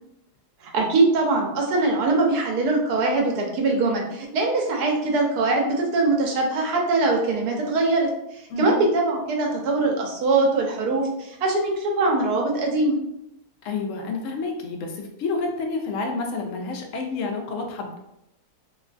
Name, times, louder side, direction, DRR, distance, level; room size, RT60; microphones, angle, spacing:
voice 1, 0.6-13.0, right 2 dB, 85° right, 1 dB, 1.2 m, -22 dB
voice 2, 8.5-8.8 13.6-18.0, left 3 dB, 70° left, 2 dB, 0.8 m, -29 dB
3.0 x 2.2 x 2.4 m, 0.82 s
omnidirectional pair, 1.6 m